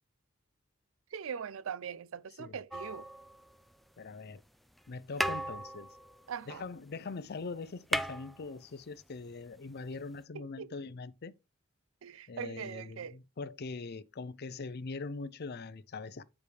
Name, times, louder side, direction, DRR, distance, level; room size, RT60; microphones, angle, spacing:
voice 1, 1.1-3.1 6.3-6.6 10.3-10.7 12.0-13.2, right 7 dB, 75° right, 0.4 m, -41 dB
sound 1, 2.7-3.9 4.8-4.9 5.1-7.0 7.3-7.4 7.6-9.0 10.2-10.3, equal, ahead, 0.4 m, -37 dB
voice 2, 4.0-4.4 4.9-5.9 6.5-11.3 12.3-16.2, left 4 dB, 50° left, 0.6 m, -42 dB
9.1 x 4.8 x 3.3 m
head